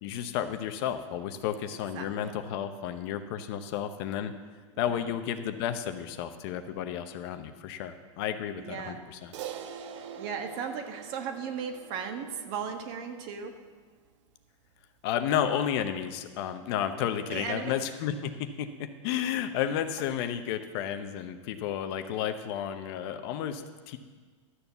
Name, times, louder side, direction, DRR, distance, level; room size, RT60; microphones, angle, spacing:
voice 1, 0.0-4.3 4.8-9.3 15.0-24.0, left 9 dB, 55° left, 8 dB, 0.9 m, -32 dB
voice 2, 1.9-2.3 4.9-5.1 8.6-9.0 10.1-13.5 17.3-17.7, right 6 dB, 50° right, 5 dB, 1.5 m, -36 dB
Crash cymbal, 9.3-13.9, right 8 dB, 70° right, 1.0 m, -44 dB
12.5 x 7.1 x 6.8 m, 1.5 s
supercardioid pair, 135°, 16 cm